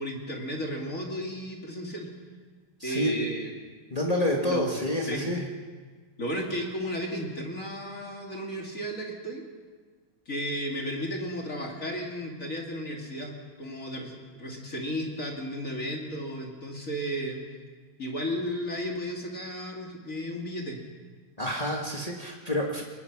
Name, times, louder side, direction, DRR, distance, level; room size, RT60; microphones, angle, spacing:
voice 1, 0.0-2.1 2.8-3.5 4.4-4.7 5.0-5.3 6.2-9.4 10.3-17.4 18.0-20.8, equal, 25° left, 0 dB, 2.2 m, -34 dB
voice 2, 2.8-3.3 3.9-5.4 21.4-22.8, left 1 dB, 45° left, -1 dB, 0.4 m, -28 dB
23.0 x 21.0 x 6.0 m, 1.5 s
omnidirectional pair, 4.3 m